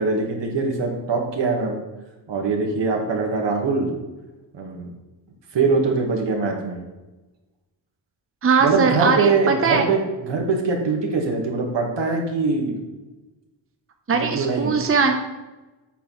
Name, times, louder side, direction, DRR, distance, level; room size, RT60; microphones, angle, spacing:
voice 1, 0.0-1.8 2.3-3.9 4.5-4.9 5.5-6.8 8.6-10.0 10.3-12.7 14.1-14.7, right 4 dB, 70° right, 1 dB, 2.0 m, -22 dB
voice 2, 8.4-9.9 14.1-15.1, right 5 dB, 30° right, 4 dB, 0.9 m, -20 dB
8.3 x 4.6 x 5.9 m, 1.1 s
cardioid pair, 75°, 45 cm